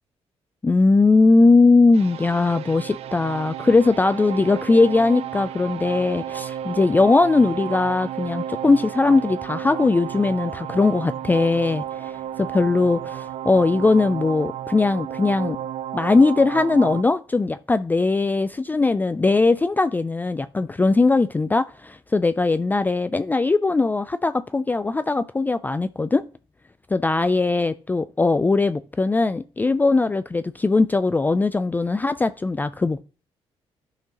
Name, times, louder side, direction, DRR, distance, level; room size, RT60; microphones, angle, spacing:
voice 1, 0.6-15.6 15.9-26.2 26.9-33.0, left 3 dB, 15° left, 0.3 m, -20 dB
sound 1, 1.9-17.0, right 11 dB, 70° right, 0.4 m, -33 dB
12.0 x 5.7 x 2.9 m
cardioid pair, 90°, 11 cm